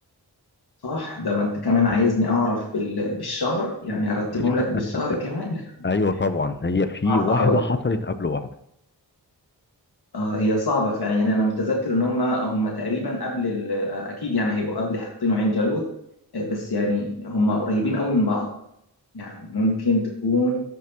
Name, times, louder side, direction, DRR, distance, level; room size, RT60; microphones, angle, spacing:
voice 1, 0.8-5.6 7.1-7.6 10.1-15.9 16.3-18.5 19.1-20.6, left 2 dB, 65° left, -2 dB, 1.8 m, -24 dB
voice 2, 5.8-8.5, left 3 dB, 30° left, 10 dB, 0.7 m, -23 dB
13.5 x 6.1 x 3.0 m, 0.75 s
wide cardioid pair, 60°, 40 cm